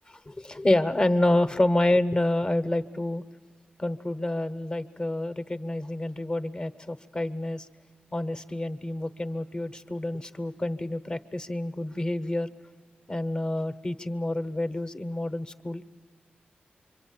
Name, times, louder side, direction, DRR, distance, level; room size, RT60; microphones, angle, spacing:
voice 1, 0.2-3.2 3.8-7.7 8.1-12.5 13.1-15.8, left 1 dB, 25° left, 10 dB, 0.9 m, -28 dB
26.5 x 24.5 x 8.8 m, 1.4 s
wide cardioid pair, 105°, 3 cm